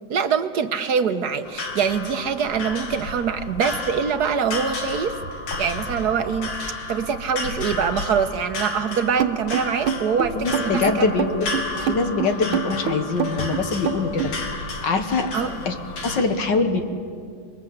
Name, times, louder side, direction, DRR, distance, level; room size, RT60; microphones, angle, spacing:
voice 1, 0.1-5.2 5.6-6.5 6.9-11.1 15.3-15.5, right 6 dB, 60° right, 9 dB, 1.3 m, -24 dB
sound 1, 1.4-16.2, left 3 dB, 80° left, 3.1 m, -32 dB
sound 2, 9.2-14.4, right 8 dB, 85° right, 1.8 m, -25 dB
voice 2, 10.3-15.3 15.7-15.8 16.0-16.8, left 3 dB, 60° left, 7 dB, 2.0 m, -24 dB
27.5 x 21.5 x 7.9 m, 2.3 s
omnidirectional pair, 2.2 m